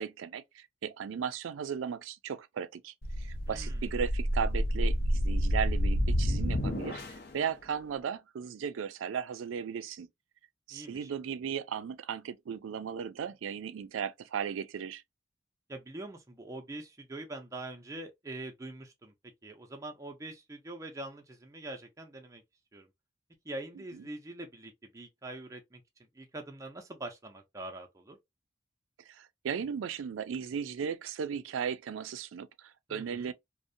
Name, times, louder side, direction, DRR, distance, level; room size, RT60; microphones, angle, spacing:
voice 1, 0.0-7.0 7.3-10.1 10.7-15.0 23.9-24.0 29.1-33.3, right 7 dB, 85° right, 0.4 m, -36 dB
sound 1, 3.0-7.3, equal, 55° left, 0.5 m, -29 dB
voice 2, 3.5-3.8 10.7-11.1 15.7-19.1 19.4-22.4 22.7-22.9 23.4-25.8 26.1-28.2 32.9-33.3, right 2 dB, 15° right, 0.4 m, -44 dB
2.6 x 2.0 x 2.5 m
head